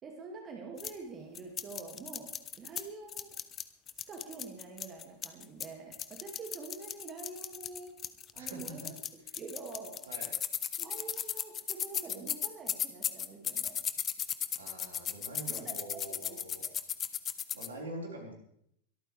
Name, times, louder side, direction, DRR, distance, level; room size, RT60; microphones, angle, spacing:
voice 1, 0.0-3.4 4.1-8.0 8.3-8.9 9.3-10.0 10.8-13.8 15.5-16.7, right 4 dB, 25° right, 1 dB, 2.3 m, -46 dB
sound 1, 0.8-0.9 1.4-2.8 3.1-5.7 5.9-17.7, left 9 dB, 25° left, 0.9 m, -36 dB
voice 2, 8.3-8.9 10.1-10.3 14.5-16.6 17.5-18.3, right 1 dB, 70° right, -1 dB, 4.8 m, -45 dB
23.0 x 13.5 x 3.4 m, 0.71 s
figure-of-eight pair, 90°, 0 cm